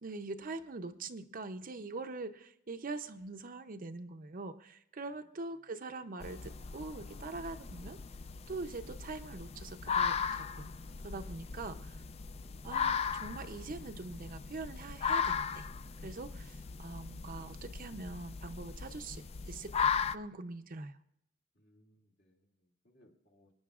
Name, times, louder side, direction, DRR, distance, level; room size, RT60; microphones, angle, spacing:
voice 1, 0.0-8.0 8.5-10.7 11.0-12.0 12.6-15.6 16.0-21.0, right 3 dB, 45° right, 8 dB, 0.6 m, -43 dB
sound 1, 6.2-20.2, left 6 dB, 30° left, 0.3 m, -37 dB
voice 2, 11.3-11.9 21.5-23.5, left 1 dB, 60° left, -1 dB, 2.4 m, -67 dB
26.0 x 9.9 x 2.4 m, 0.73 s
head